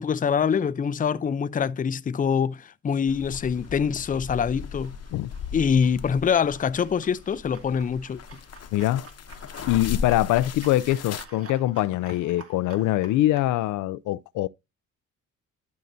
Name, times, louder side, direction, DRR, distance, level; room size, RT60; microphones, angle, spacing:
voice 1, 0.0-4.9 5.5-8.2, left 7 dB, 30° left, 0.5 m, -24 dB
sound 1, 3.0-13.5, right 4 dB, 50° right, 2.3 m, -50 dB
sound 2, 3.1-11.3, left 6 dB, 55° left, 1.0 m, -37 dB
voice 2, 8.7-9.1 9.7-14.5, left 15 dB, 85° left, 0.5 m, -23 dB
12.0 x 5.6 x 2.7 m
cardioid pair, 90°, 30 cm